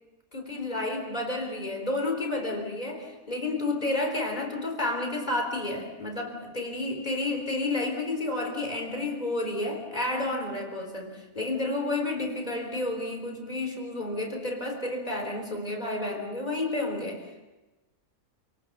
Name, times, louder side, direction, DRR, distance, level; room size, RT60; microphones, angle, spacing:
voice 1, 0.3-17.4, left 2 dB, 30° left, 3 dB, 4.0 m, -31 dB
28.5 x 18.5 x 6.8 m, 1.1 s
omnidirectional pair, 1.5 m